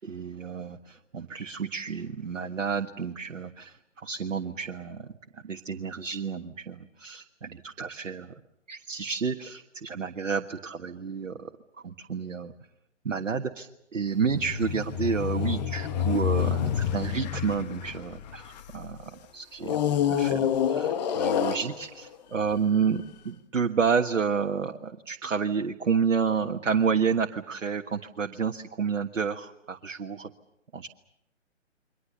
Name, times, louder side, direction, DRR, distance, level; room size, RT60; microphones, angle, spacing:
voice 1, 0.0-5.1 5.3-8.3 8.7-11.5 11.8-12.5 13.0-30.3 30.7-30.9, right 6 dB, 75° right, 5 dB, 1.5 m, -30 dB
sound 1, 14.2-18.9 19.6-22.2 22.8-23.0, left 9 dB, 35° left, 1.7 m, -28 dB
29.5 x 24.0 x 6.7 m, 0.86 s
figure-of-eight pair, 135°, 37 cm